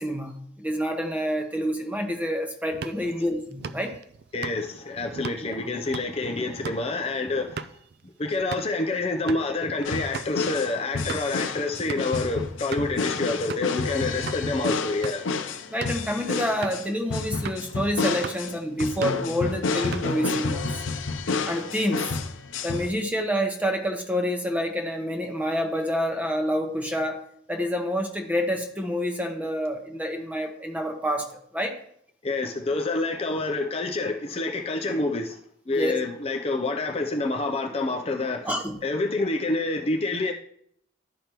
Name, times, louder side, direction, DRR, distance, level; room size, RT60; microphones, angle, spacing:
voice 1, 0.0-4.0 5.5-5.6 15.7-20.9 21.4-22.2 22.6-31.8 35.7-36.0 38.4-38.8, equal, 10° right, 0.8 m, -28 dB
sound 1, 2.7-8.8 9.1-9.5 9.8-9.9 10.1-10.3 10.8-11.4 11.9-12.2 12.7-13.0 13.5-13.8 14.3-14.4 14.9-15.3 15.7-16.1 16.6-16.9 17.4-17.7 18.0-18.5 18.8-19.3 19.7-20.3, right 5 dB, 55° right, 0.3 m, -38 dB
voice 2, 4.3-7.7 8.2-15.2 32.2-35.4 35.7-38.5 38.8-40.3, left 2 dB, 30° left, 0.5 m, -27 dB
sound 2, 9.8-22.9, left 4 dB, 80° left, 0.6 m, -30 dB
12.5 x 5.1 x 3.0 m
head